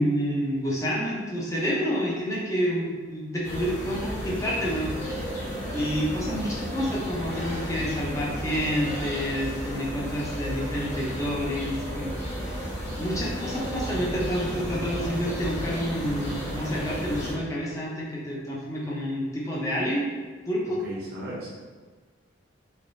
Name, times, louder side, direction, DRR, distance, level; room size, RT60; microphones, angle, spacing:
voice 1, 0.0-5.4 5.7-12.1 12.4-12.7 13.0-20.1 20.5-20.8, equal, 15° left, -5 dB, 0.7 m, -29 dB
sound 1, 3.4-17.3, equal, 40° left, 1.2 m, -33 dB
voice 2, 20.7-21.5, right 1 dB, 50° right, -5 dB, 0.8 m, -36 dB
3.5 x 3.4 x 2.7 m, 1.4 s
head